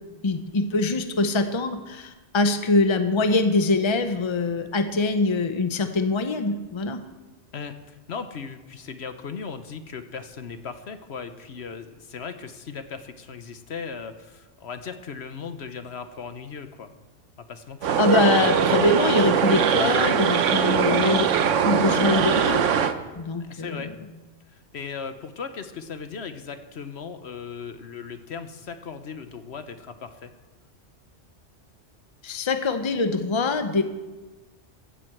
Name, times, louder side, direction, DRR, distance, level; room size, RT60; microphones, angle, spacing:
voice 1, 0.2-7.0 18.0-21.3 21.6-22.7 23.2-23.9 32.2-33.8, left 3 dB, 25° left, 8 dB, 0.8 m, -23 dB
voice 2, 7.5-16.9 17.5-18.0 23.4-23.9 24.5-30.3, left 6 dB, 65° left, 9 dB, 1.1 m, -37 dB
sound 1, 17.8-22.9, right 7 dB, 90° right, 1.1 m, -21 dB
15.0 x 7.6 x 7.8 m, 1.2 s
omnidirectional pair, 1.2 m